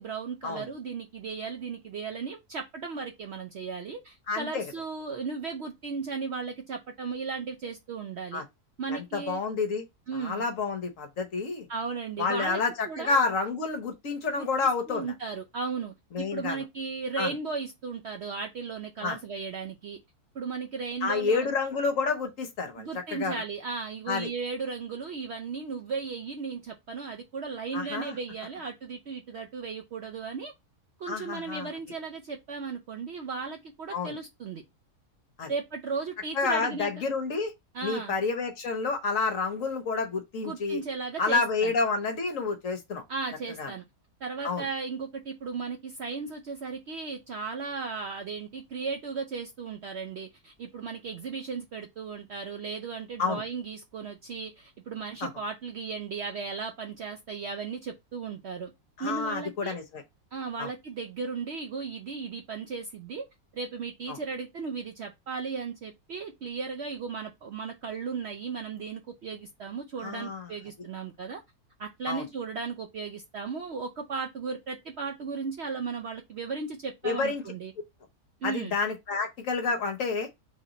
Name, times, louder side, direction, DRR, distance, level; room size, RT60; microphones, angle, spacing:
voice 1, 0.0-8.4 8.8-9.4 10.1-10.4 11.7-13.2 14.4-14.5 14.9-20.0 20.3-21.5 22.8-30.5 31.0-34.6 35.5-36.9 37.7-38.1 40.4-41.7 43.1-43.8 44.2-58.7 59.0-59.8 60.3-63.2 63.5-71.4 71.8-77.7 78.4-78.7, right 5 dB, 65° right, 0.7 m, -36 dB
voice 2, 4.3-4.7 8.3-8.4 8.9-9.8 10.1-11.7 12.2-15.1 16.1-16.6 17.2-17.3 19.0-19.2 21.0-23.4 24.1-24.3 27.7-28.2 31.1-31.7 33.9-34.2 35.4-35.5 36.3-37.5 37.8-40.8 41.2-43.0 43.6-43.7 44.4-44.7 53.2-53.4 55.2-55.3 59.0-60.0 60.6-60.7 64.1-64.2 70.0-70.5 72.1-72.2 77.0-77.4 78.4-80.3, left 4 dB, 60° left, 1.2 m, -29 dB
4.1 x 3.1 x 4.0 m
omnidirectional pair, 1.7 m